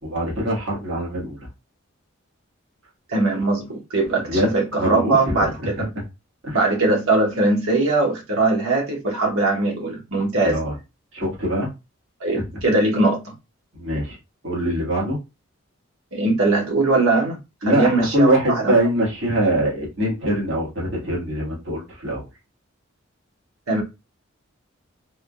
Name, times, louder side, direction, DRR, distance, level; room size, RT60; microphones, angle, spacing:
voice 1, 0.0-1.4 4.3-4.5 4.8-5.8 6.4-6.7 10.4-10.7 11.1-11.7 13.7-14.2 14.4-15.2 17.6-22.2, right 1 dB, 60° right, 1.5 m, -23 dB
voice 2, 3.1-5.9 6.5-10.6 12.2-13.3 16.1-17.4 17.6-18.7 23.7-23.8, right 2 dB, 85° right, 1.1 m, -21 dB
3.5 x 2.2 x 2.4 m
head